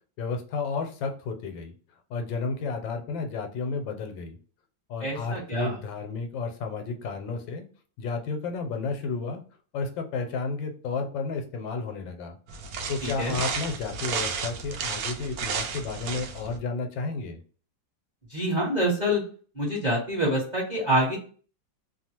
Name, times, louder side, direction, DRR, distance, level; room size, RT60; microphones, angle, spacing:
voice 1, 0.2-1.7 2.1-4.4 4.9-7.7 8.0-9.4 9.7-12.4 12.9-17.4, left 4 dB, 85° left, 5 dB, 1.3 m, -32 dB
voice 2, 5.0-5.7 13.2-13.3 18.3-19.2 19.5-21.2, equal, 30° right, -5 dB, 0.9 m, -26 dB
sound 1, 12.5-16.6, right 5 dB, 75° right, 0.8 m, -33 dB
3.0 x 2.3 x 2.8 m, 0.41 s
omnidirectional pair, 2.1 m